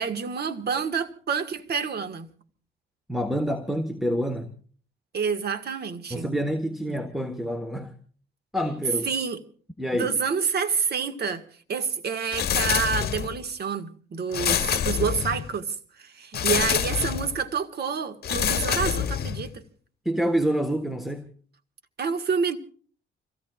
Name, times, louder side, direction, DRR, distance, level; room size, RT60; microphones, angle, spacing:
voice 1, 0.0-2.3 5.1-6.3 6.9-7.0 9.0-9.4 9.9-11.4 11.7-19.6 22.0-22.6, right 6 dB, 55° right, 1.7 m, -28 dB
voice 2, 3.1-4.5 6.1-7.9 8.5-9.1 9.8-10.1 20.0-21.3, equal, ahead, 1.3 m, -27 dB
sound 1, 12.3-13.4 14.3-15.5 16.3-17.4 18.2-19.5, left 9 dB, 55° left, 1.1 m, -26 dB
29.0 x 16.5 x 2.4 m
cardioid pair, 90°, 20 cm